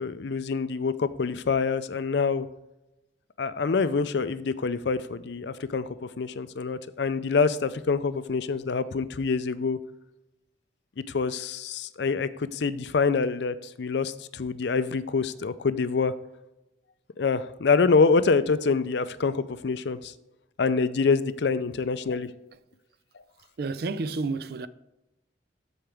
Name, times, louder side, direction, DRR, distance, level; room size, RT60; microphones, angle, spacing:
voice 1, 0.0-2.5 3.4-5.9 6.2-9.8 11.1-16.1 17.2-20.1 20.6-22.3, left 4 dB, 65° left, 0.5 m, -26 dB
voice 2, 23.6-24.7, right 3 dB, 55° right, 0.4 m, -30 dB
13.5 x 4.9 x 3.4 m
head